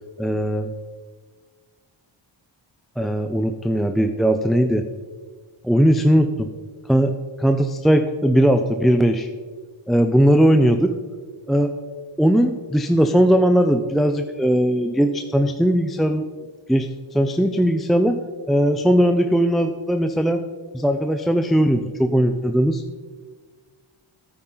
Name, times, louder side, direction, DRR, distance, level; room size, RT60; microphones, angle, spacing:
voice 1, 0.2-0.7 3.0-4.8 5.6-6.5 6.9-7.1 7.4-9.3 9.9-10.9 11.5-11.7 12.2-16.3 16.7-18.2 18.5-20.4 20.7-22.8, equal, ahead, 6 dB, 0.5 m, -19 dB
9.9 x 8.8 x 3.9 m, 1.5 s
cardioid pair, 45°, 50 cm